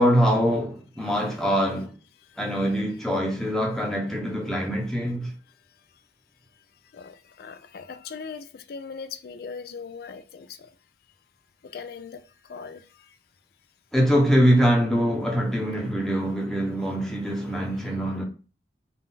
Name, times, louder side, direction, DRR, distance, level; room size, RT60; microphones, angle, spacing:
voice 1, 0.0-1.9 2.4-5.3 13.9-18.2, equal, ahead, 0.8 m, -23 dB
voice 2, 2.2-2.7 6.9-10.7 11.6-13.2 17.5-17.6, left 5 dB, 55° left, 0.4 m, -40 dB
3.8 x 2.4 x 4.0 m
head